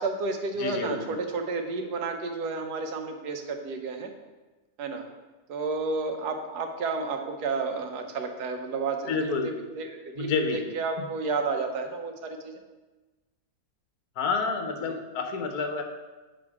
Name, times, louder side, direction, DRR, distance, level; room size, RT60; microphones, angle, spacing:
voice 1, 0.0-4.1 4.8-5.0 5.5-12.6 14.9-15.0, right 3 dB, 85° right, 5 dB, 1.4 m, -31 dB
voice 2, 0.6-1.2 9.1-9.5 10.2-10.6 14.2-15.8, left 4 dB, 75° left, 5 dB, 1.3 m, -29 dB
7.6 x 4.0 x 4.7 m, 1.2 s
omnidirectional pair, 1.6 m